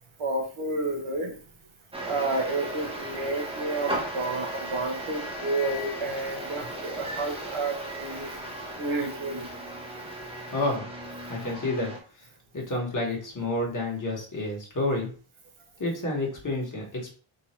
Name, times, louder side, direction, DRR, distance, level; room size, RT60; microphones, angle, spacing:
voice 1, 0.2-1.4 2.0-8.3 8.8-9.5, right 2 dB, 75° right, 1 dB, 1.3 m, -30 dB
sound 1, 1.9-12.0, right 1 dB, 10° right, 0.9 m, -36 dB
voice 2, 10.5-10.8 11.3-11.9 12.2-12.3 12.5-15.1 15.8-17.1, left 2 dB, 40° left, -2 dB, 1.6 m, -29 dB
3.9 x 2.8 x 4.3 m, 0.42 s
wide cardioid pair, 145°, 50 cm